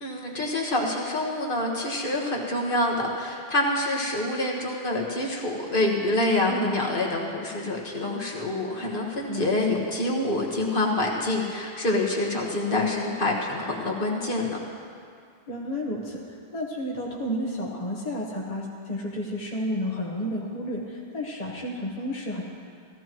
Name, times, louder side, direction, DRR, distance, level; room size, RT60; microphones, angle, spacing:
voice 1, 0.0-14.6, left 2 dB, 60° left, -2 dB, 1.7 m, -26 dB
voice 2, 6.5-6.8 9.3-9.8 15.5-22.4, equal, 40° left, -3 dB, 1.2 m, -31 dB
16.5 x 14.5 x 3.1 m, 2.3 s
omnidirectional pair, 1.0 m